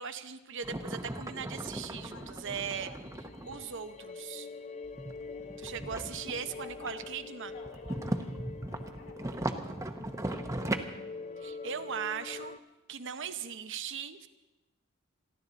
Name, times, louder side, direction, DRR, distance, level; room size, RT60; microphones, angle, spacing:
voice 1, 0.0-2.9 3.4-4.5 5.6-7.5 11.4-12.6 12.9-14.3, right 7 dB, 65° right, 9 dB, 0.8 m, -39 dB
sound 1, 0.6-3.6 4.8-7.1 7.5-10.8, right 1 dB, 15° right, 0.9 m, -38 dB
Mysterious Ambiance Music, 0.7-12.6, left 4 dB, 35° left, 0.5 m, -46 dB
voice 2, 2.1-3.1 5.2-5.9 6.3-7.0 7.5-11.9 13.1-13.3, left 3 dB, 65° left, 3 dB, 2.5 m, -55 dB
29.0 x 11.5 x 4.1 m, 1.0 s
head